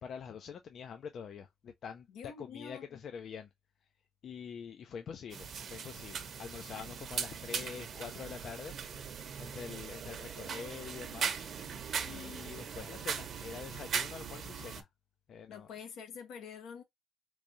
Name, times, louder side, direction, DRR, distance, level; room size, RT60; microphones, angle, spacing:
voice 1, 0.0-2.1 2.4-3.5 4.2-8.8 9.4-11.5 12.1-14.9 15.3-15.7, left 7 dB, 60° left, 0.5 m, -45 dB
voice 2, 2.1-3.0 12.1-12.4 15.5-16.8, left 7 dB, 85° left, 1.1 m, -47 dB
sound 1, 5.3-14.8, right 7 dB, 60° right, 0.7 m, -39 dB
3.5 x 3.1 x 2.6 m
cardioid pair, 90°, 0 cm